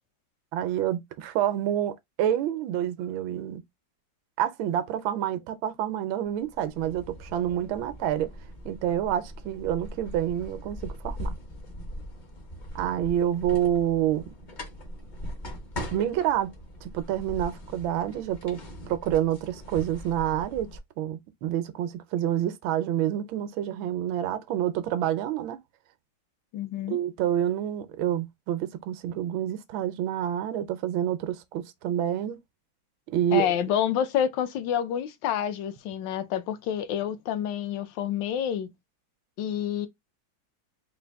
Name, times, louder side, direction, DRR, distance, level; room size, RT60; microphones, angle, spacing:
voice 1, 0.5-3.6 4.4-8.3 8.6-11.3 12.7-14.2 15.9-16.5 16.8-18.6 18.9-25.6 26.9-32.4 33.1-33.5, right 11 dB, 80° right, 1.4 m, -28 dB
sound 1, 6.3-20.8, equal, 45° left, 0.6 m, -40 dB
voice 2, 26.5-27.0 33.3-38.7 39.4-39.9, left 9 dB, 75° left, 1.2 m, -28 dB
3.9 x 2.4 x 3.4 m
omnidirectional pair, 2.2 m